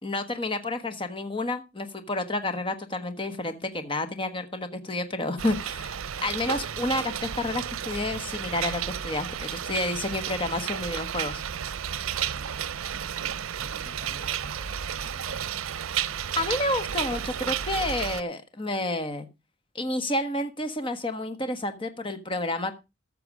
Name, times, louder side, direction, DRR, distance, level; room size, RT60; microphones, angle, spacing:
voice 1, 0.0-11.4 16.4-19.3 19.7-22.7, left 2 dB, 25° left, 9 dB, 1.4 m, -30 dB
sound 1, 5.4-18.2, right 9 dB, 90° right, 0.6 m, -32 dB
voice 2, 12.2-15.7, equal, 30° right, 4 dB, 7.2 m, -49 dB
14.0 x 6.9 x 4.9 m, 0.27 s
head